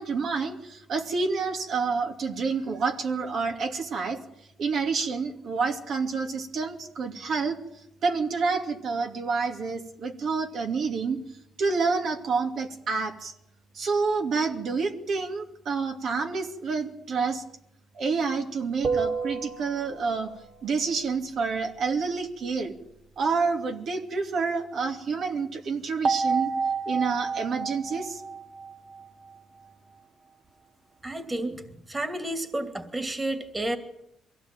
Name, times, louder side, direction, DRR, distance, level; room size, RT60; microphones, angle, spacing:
voice 1, 0.0-4.2 4.6-7.6 8.0-11.2 11.6-13.3 13.7-17.4 17.9-20.3 20.6-22.7 23.2-26.5 26.9-28.2, right 4 dB, 65° right, 3 dB, 2.6 m, -28 dB
sound 1, 18.8-20.4 26.0-29.4, right 5 dB, 45° right, 2.1 m, -30 dB
voice 2, 31.0-33.8, right 1 dB, 20° right, 8 dB, 2.6 m, -31 dB
22.5 x 16.5 x 9.1 m, 0.81 s
cardioid pair, 90°, 0 cm